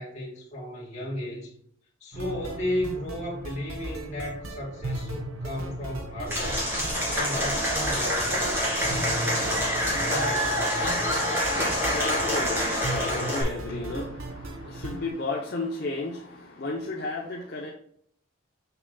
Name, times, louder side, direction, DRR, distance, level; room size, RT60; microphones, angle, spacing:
voice 1, 0.0-1.5 2.0-6.7 7.1-8.9 10.1-10.9, left 1 dB, 35° left, 2.6 m, -34 dB
sound 1, 2.1-15.1, right 1 dB, 85° right, 0.9 m, -37 dB
Applause / Crowd, 6.3-13.4, equal, 10° right, 2.4 m, -26 dB
voice 2, 10.9-17.7, left 2 dB, 50° left, 0.8 m, -34 dB
6.8 x 6.1 x 2.3 m
head